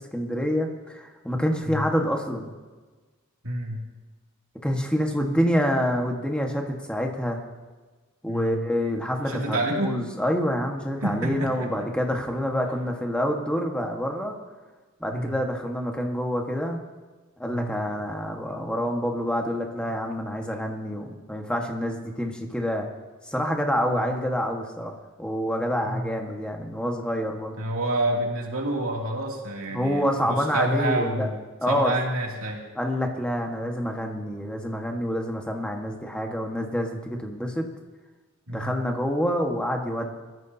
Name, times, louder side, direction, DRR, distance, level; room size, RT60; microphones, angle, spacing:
voice 1, 0.1-2.5 4.6-7.4 8.2-14.3 15.0-16.8 17.4-22.9 23.2-24.9 25.2-27.5 29.7-31.3 31.6-31.9 32.7-37.7 38.5-40.2, equal, 5° left, 1 dB, 1.5 m, -27 dB
voice 2, 3.4-3.8 8.3-8.6 9.3-10.0 11.0-11.7 15.1-15.4 17.5-17.8 23.9-24.1 25.8-26.1 27.6-31.4 31.7-32.6 38.5-38.7, right 1 dB, 85° right, -2 dB, 2.7 m, -28 dB
22.0 x 14.0 x 2.8 m, 1.3 s
head